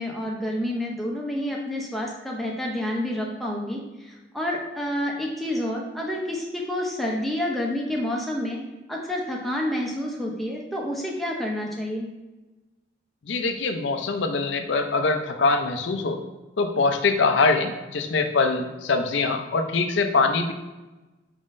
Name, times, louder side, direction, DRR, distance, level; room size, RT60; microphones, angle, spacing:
voice 1, 0.0-3.8 4.3-8.6 8.9-12.1, left 1 dB, ahead, -2 dB, 0.6 m, -28 dB
voice 2, 13.2-16.2 16.6-20.5, left 3 dB, 75° left, 6 dB, 0.5 m, -23 dB
5.1 x 3.6 x 2.5 m, 1.1 s
head